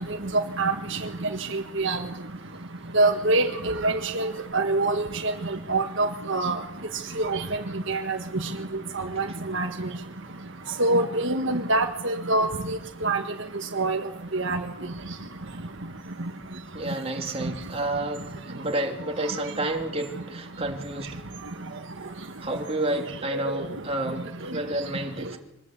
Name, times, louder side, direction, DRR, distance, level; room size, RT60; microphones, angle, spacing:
voice 1, 0.6-1.0 1.5-2.0 2.9-5.3 5.7-6.6 7.2-7.4 7.9-8.5 8.9-9.2 9.5-9.7 10.8-13.2 13.7-14.0 14.3-14.6 23.3-23.5, right 2 dB, 60° right, 5 dB, 1.6 m, -25 dB
voice 2, 16.7-21.2 22.4-25.4, right 1 dB, 30° right, 2 dB, 3.1 m, -30 dB
25.0 x 20.0 x 8.3 m, 0.82 s
head